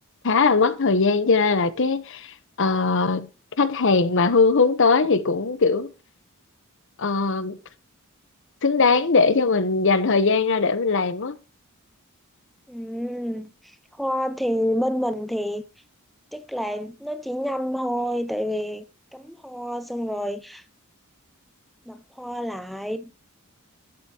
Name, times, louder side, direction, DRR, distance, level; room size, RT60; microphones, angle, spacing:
voice 1, 0.2-3.3 3.6-5.9 7.0-7.6 8.6-11.4, left 4 dB, 60° left, 0.9 m, -20 dB
voice 2, 12.7-15.6 16.3-18.9 19.1-20.6 21.9-23.1, equal, ahead, 0.4 m, -28 dB
12.5 x 8.1 x 2.8 m
head